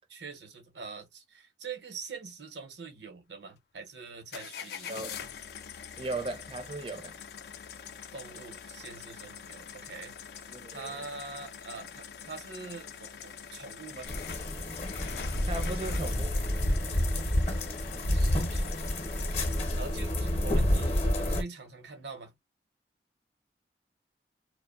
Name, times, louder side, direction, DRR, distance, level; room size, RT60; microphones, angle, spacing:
voice 1, 0.1-5.0 8.1-10.2 10.7-14.1 18.1-19.1 19.8-22.3, right 4 dB, 80° right, 0.9 m, -44 dB
sound 1, 4.3-20.2, left 7 dB, 60° left, 0.4 m, -44 dB
voice 2, 4.9-5.2 6.0-7.2 10.5-11.0 15.5-16.4, right 2 dB, 30° right, 0.5 m, -37 dB
sound 2, 14.1-21.4, left 1 dB, 35° left, 0.7 m, -29 dB
2.5 x 2.1 x 2.3 m
head